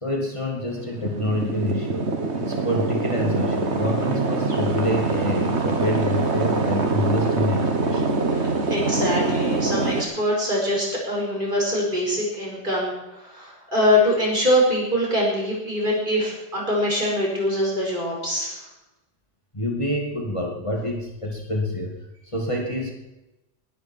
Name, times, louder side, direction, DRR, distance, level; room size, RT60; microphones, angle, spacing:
voice 1, 0.0-8.1 19.5-22.0 22.2-22.9, left 1 dB, 25° left, -1 dB, 2.5 m, -27 dB
sound 1, 0.6-10.0, right 3 dB, 65° right, 2.0 m, -24 dB
voice 2, 8.6-18.6, left 1 dB, 45° right, -3 dB, 5.8 m, -23 dB
19.5 x 13.0 x 4.6 m, 0.97 s
omnidirectional pair, 1.2 m